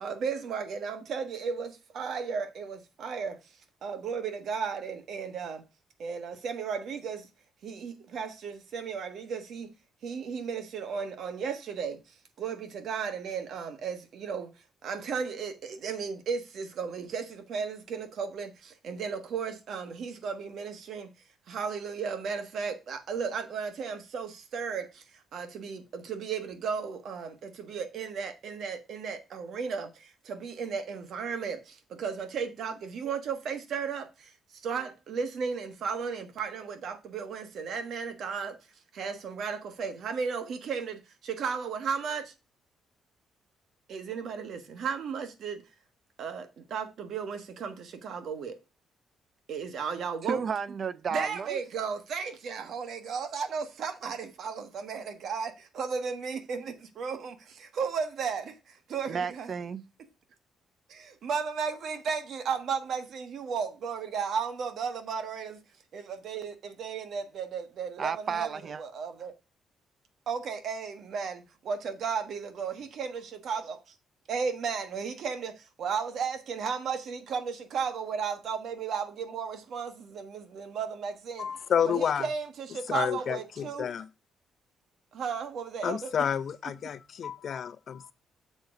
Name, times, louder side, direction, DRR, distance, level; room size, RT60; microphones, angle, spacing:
voice 1, 0.0-1.7 2.0-3.3 3.8-5.6 6.0-7.2 7.6-9.7 10.0-11.9 12.4-12.6 12.8-14.0 14.2-14.5 14.8-15.5 15.8-17.2 17.5-18.5 18.9-21.0 21.5-24.8 25.3-25.8 26.1-27.3 27.7-29.9 30.4-31.6 32.0-34.0 34.6-38.5 39.0-40.9 41.4-42.2 43.9-45.5 46.2-46.4 46.7-47.7 48.0-48.5 49.5-50.4 51.1-55.5 55.8-56.6 57.0-57.2 57.8-58.4 58.9-59.5 61.2-65.5 66.2-66.5 66.8-68.5 68.8-69.3 70.3-71.3 71.7-73.1 73.4-73.6 74.3-75.5 75.8-77.4 77.7-79.1 79.3-79.9 80.2-80.3 80.6-81.4 81.9-82.5 82.9-83.8 85.2-86.1, right 6 dB, 65° right, 1.4 m, -34 dB
voice 2, 50.3-51.6 59.1-59.8 68.0-68.8, right 6 dB, 45° right, 0.5 m, -32 dB
voice 3, 81.4-82.3 82.9-84.1 85.8-88.1, left 8 dB, 55° left, 0.6 m, -30 dB
7.1 x 3.9 x 5.8 m
cardioid pair, 90°, 0 cm